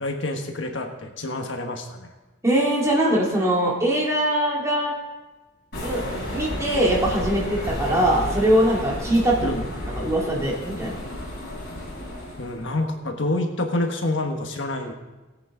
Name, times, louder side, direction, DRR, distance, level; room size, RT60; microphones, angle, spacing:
voice 1, 0.0-2.1 9.4-9.6 12.4-14.9, left 2 dB, 65° left, 3 dB, 1.3 m, -27 dB
voice 2, 2.4-4.9 5.8-6.0 6.3-9.5 10.0-11.0, right 1 dB, 15° right, -4 dB, 2.4 m, -22 dB
sound 1, 5.7-12.7, left 1 dB, 50° left, 4.4 m, -32 dB
18.5 x 8.5 x 3.9 m, 1.2 s
head